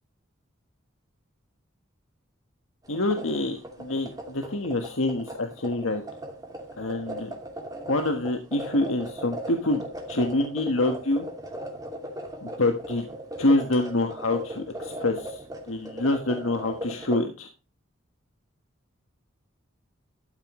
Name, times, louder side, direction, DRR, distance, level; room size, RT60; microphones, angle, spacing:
voice 1, 2.9-6.0 6.8-7.3 7.9-11.3 12.4-13.0 13.4-17.5, left 2 dB, 85° left, 4 dB, 1.5 m, -26 dB
sound 1, 2.9-17.2, right 1 dB, 20° right, 2.5 m, -38 dB
13.0 x 9.2 x 3.2 m, 0.30 s
head